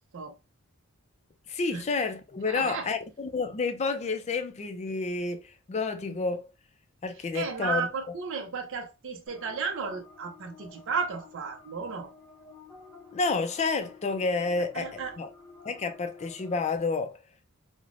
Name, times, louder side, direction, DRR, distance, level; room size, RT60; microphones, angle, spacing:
voice 1, 1.5-6.5 7.0-7.9 13.1-15.3 15.6-17.2, left 4 dB, 30° left, 0.4 m, -30 dB
voice 2, 2.4-2.9 7.1-12.1 14.7-15.2, right 5 dB, 60° right, 0.5 m, -34 dB
sound 1, 9.3-16.7, left 4 dB, 10° left, 0.8 m, -51 dB
3.2 x 2.0 x 2.4 m
head